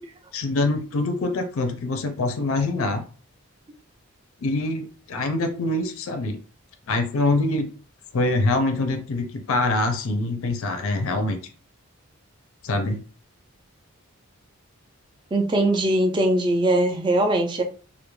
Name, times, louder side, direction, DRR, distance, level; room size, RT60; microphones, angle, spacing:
voice 1, 0.3-3.0 4.4-6.4 6.9-7.7 8.1-11.4 12.6-13.0, left 2 dB, 65° left, 6 dB, 0.4 m, -24 dB
voice 2, 15.3-17.6, right 1 dB, 20° right, 4 dB, 0.3 m, -21 dB
2.2 x 2.1 x 3.0 m, 0.39 s
head